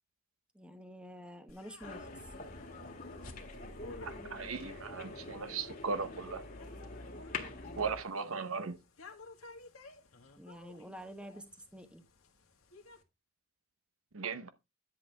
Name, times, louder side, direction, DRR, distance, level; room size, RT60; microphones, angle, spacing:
voice 1, 0.5-2.3 7.6-7.9 10.4-11.5 11.7-12.0, equal, 5° right, 1.1 m, -49 dB
sound 1, 1.5-13.0, left 3 dB, 80° left, 1.8 m, -56 dB
sound 2, 1.8-8.0, left 3 dB, 40° left, 1.8 m, -45 dB
voice 2, 4.0-6.5 7.8-8.8 14.1-14.5, right 5 dB, 80° right, 0.9 m, -37 dB
10.5 x 7.5 x 3.4 m
head